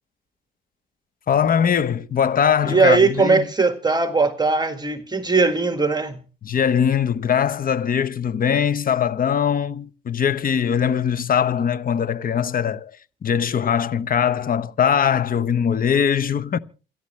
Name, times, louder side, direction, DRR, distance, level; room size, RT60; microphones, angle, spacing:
voice 1, 1.3-3.5 6.4-13.0 13.2-16.6, left 8 dB, 45° left, 1.0 m, -21 dB
voice 2, 2.6-6.2, right 4 dB, 20° right, 1.8 m, -19 dB
28.0 x 11.0 x 3.2 m
cardioid pair, 90°, 20 cm